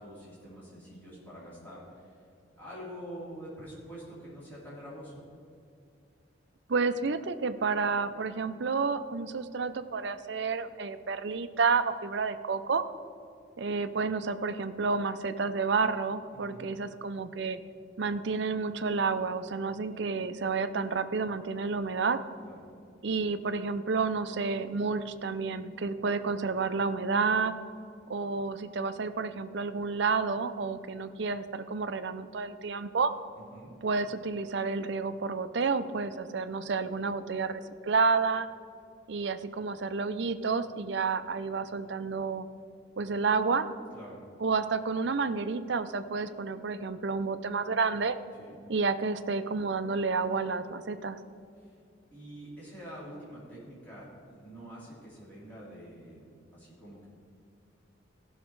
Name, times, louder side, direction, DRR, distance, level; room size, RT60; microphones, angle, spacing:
voice 1, 0.0-2.3 2.5-5.2 16.3-16.7 22.4-22.6 33.3-33.8 43.9-44.2 48.4-48.6 51.6-51.8 52.1-56.2 56.5-57.0, equal, 10° left, -9 dB, 3.1 m, -46 dB
voice 2, 6.7-12.8 13.6-17.6 18.0-22.2 23.0-27.5 28.1-33.1 33.8-38.5 39.1-42.5 43.0-43.7 44.4-48.2 48.7-51.2, right 4 dB, 65° right, 11 dB, 0.5 m, -30 dB
16.0 x 6.3 x 4.6 m, 2.4 s
head